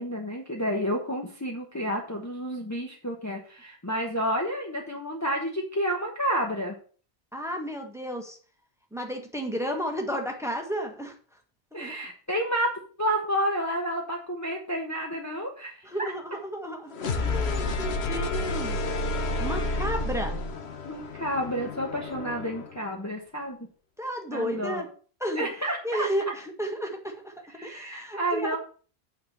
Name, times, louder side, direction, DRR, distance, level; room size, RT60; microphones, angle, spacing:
voice 1, 0.0-6.7 11.7-12.7 13.0-15.9 20.8-23.6 24.3-24.8 25.4-26.1 27.5-28.6, equal, 15° left, -1 dB, 1.2 m, -30 dB
voice 2, 7.3-8.4 8.9-11.1 11.7-12.0 15.8-18.8 19.4-20.4 24.0-24.9 25.2-25.5 25.8-27.3 27.6-28.6, equal, 5° right, 3 dB, 1.5 m, -32 dB
sound 1, 16.9-22.8, left 2 dB, 80° left, 1.3 m, -30 dB
8.7 x 4.3 x 6.8 m, 0.41 s
omnidirectional pair, 1.1 m